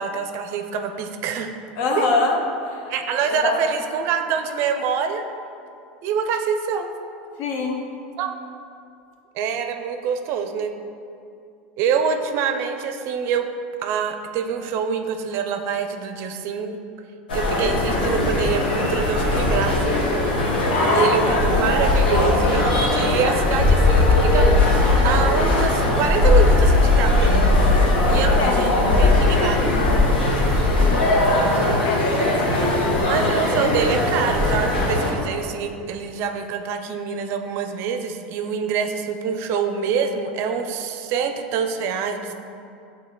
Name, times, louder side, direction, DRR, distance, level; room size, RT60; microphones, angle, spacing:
voice 1, 0.0-1.5 2.0-2.1 2.9-5.2 6.0-6.9 8.2-8.4 9.3-10.7 11.8-13.5 13.8-16.8 17.3-20.0 20.9-27.5 28.1-29.7 33.0-42.3, right 6 dB, 55° right, 6 dB, 0.4 m, -25 dB
voice 2, 1.8-2.9 3.2-3.7 7.4-7.9 20.7-21.4 28.0-28.9 31.0-32.3, left 3 dB, 60° left, 2 dB, 0.7 m, -25 dB
sound 1, 17.3-35.1, left 2 dB, 85° left, 0.9 m, -19 dB
7.3 x 3.1 x 2.3 m, 2.4 s
hypercardioid pair, 95°, 5 cm